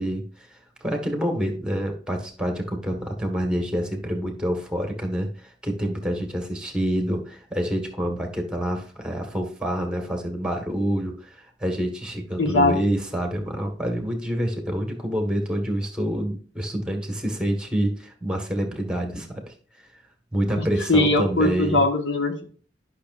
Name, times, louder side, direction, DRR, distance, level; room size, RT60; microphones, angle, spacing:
voice 1, 0.0-20.0 20.3-21.8, equal, 5° right, 3 dB, 1.5 m, -27 dB
voice 2, 12.4-12.7 20.6-22.5, left 2 dB, 80° left, 4 dB, 1.5 m, -21 dB
12.0 x 6.0 x 2.5 m, 0.42 s
head